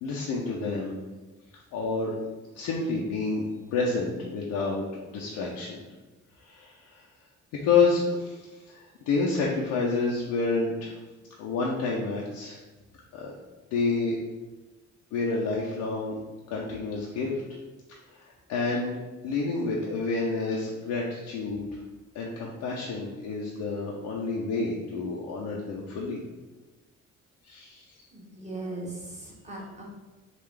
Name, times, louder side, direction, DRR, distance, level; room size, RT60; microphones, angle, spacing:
voice 1, 0.0-0.9 1.7-2.1 2.5-3.4 3.7-5.8 6.4-7.0 7.6-11.0 11.4-12.6 13.1-13.3 13.7-14.2 15.1-16.1 16.5-17.4 18.1-18.9 19.2-21.8 22.1-26.2 27.4-27.8, left 4 dB, 90° left, -3 dB, 0.6 m, -29 dB
voice 2, 28.1-29.8, right 2 dB, 25° right, -2 dB, 1.0 m, -38 dB
3.7 x 2.4 x 3.3 m, 1.2 s
cardioid pair, 90°, 30 cm